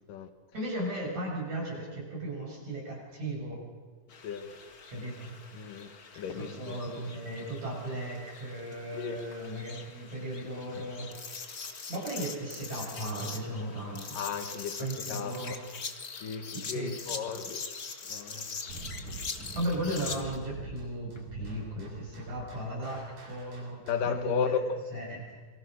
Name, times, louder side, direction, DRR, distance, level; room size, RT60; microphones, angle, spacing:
voice 1, 0.5-3.6 4.9-5.3 6.3-11.4 11.9-14.2 14.8-15.6 16.5-17.0 19.5-23.8 24.0-24.5 24.9-25.4, right 1 dB, 60° right, 8.7 m, -36 dB
sound 1, 4.1-20.4, left 5 dB, 40° left, 1.5 m, -43 dB
voice 2, 4.2-4.6 5.5-5.9 6.2-6.8 8.9-9.2 14.1-15.6 16.2-17.6 18.1-18.8 23.9-24.8, left 6 dB, 90° left, 3.3 m, -34 dB
sound 2, 18.7-24.2, right 3 dB, 80° right, 9.1 m, -44 dB
28.0 x 23.0 x 6.6 m
omnidirectional pair, 3.7 m